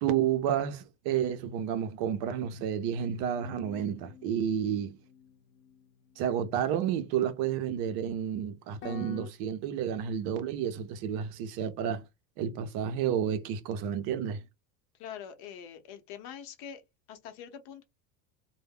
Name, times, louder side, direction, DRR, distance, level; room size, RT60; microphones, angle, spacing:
voice 1, 0.0-5.0 6.2-12.0 12.4-14.4, right 9 dB, 55° right, 0.6 m, -31 dB
sound 1, 3.3-7.5 8.8-9.3, left 10 dB, 30° left, 0.4 m, -50 dB
voice 2, 15.0-16.8 17.1-17.8, left 8 dB, 55° left, 0.8 m, -44 dB
2.2 x 2.1 x 3.4 m
cardioid pair, 140°, 45 cm